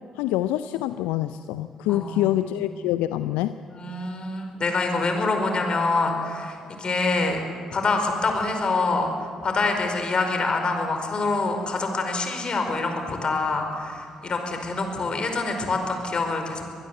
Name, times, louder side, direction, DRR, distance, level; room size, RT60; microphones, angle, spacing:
voice 1, 0.2-3.6, left 14 dB, 70° left, 12 dB, 0.5 m, -26 dB
voice 2, 1.9-2.5 3.7-7.4 7.7-16.7, left 3 dB, 40° left, 5 dB, 5.0 m, -26 dB
24.5 x 20.0 x 8.0 m, 2.3 s
figure-of-eight pair, 40°, 2 cm